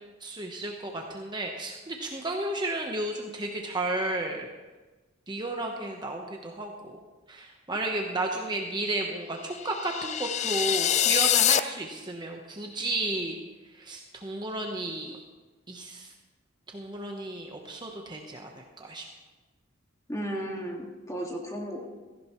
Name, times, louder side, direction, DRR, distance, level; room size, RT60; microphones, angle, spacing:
voice 1, 0.2-4.5 5.3-7.0 7.3-13.4 13.7-15.2 15.7-16.1 16.7-19.1, right 2 dB, 20° right, 2 dB, 1.0 m, -33 dB
sound 1, 9.6-11.6, left 11 dB, 35° left, 0.3 m, -24 dB
voice 2, 20.1-21.8, equal, 15° left, 0 dB, 1.9 m, -34 dB
16.5 x 15.0 x 3.1 m, 1.2 s
head